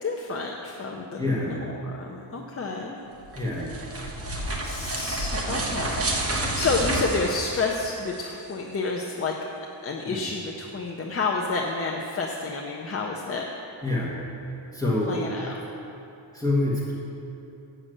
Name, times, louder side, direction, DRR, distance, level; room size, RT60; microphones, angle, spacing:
voice 1, 0.0-3.0 4.6-9.3 9.8-13.5 15.1-15.6, left 3 dB, 30° left, -1 dB, 0.5 m, -30 dB
voice 2, 1.2-1.6 3.3-3.7 10.0-10.2 13.8-14.1 14.7-15.6 16.3-16.9, left 2 dB, 5° left, -6 dB, 1.4 m, -27 dB
sound 1, 3.2-8.2, right 1 dB, 30° right, 1.0 m, -29 dB
7.8 x 6.2 x 7.7 m, 2.9 s
wide cardioid pair, 155°, 48 cm